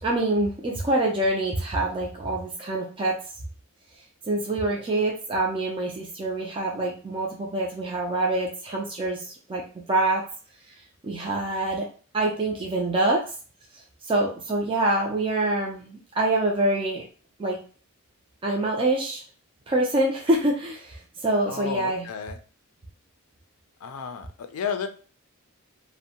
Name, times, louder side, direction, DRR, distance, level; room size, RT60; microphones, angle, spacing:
voice 1, 0.0-3.2 4.2-9.6 9.9-10.2 10.7-11.9 12.1-13.2 13.7-17.0 17.4-17.6 18.4-19.2 19.7-22.1, right 2 dB, 25° right, -2 dB, 0.4 m, -25 dB
voice 2, 21.5-22.4 23.8-24.9, left 6 dB, 80° left, 9 dB, 0.4 m, -32 dB
2.6 x 2.1 x 2.7 m, 0.40 s
head